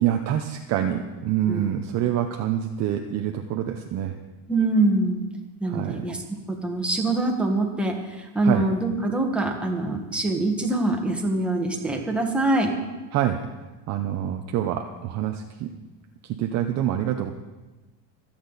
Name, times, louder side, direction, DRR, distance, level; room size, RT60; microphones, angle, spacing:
voice 1, 0.0-4.2 5.7-6.0 8.4-8.6 13.1-13.4 13.9-15.7 16.2-17.3, right 11 dB, 35° right, 4 dB, 0.6 m, -26 dB
voice 2, 4.5-5.2 5.6-6.2 6.5-12.7, right 2 dB, ahead, 0 dB, 1.3 m, -24 dB
25.5 x 8.7 x 4.0 m, 1.2 s
cardioid pair, 165°, 50 cm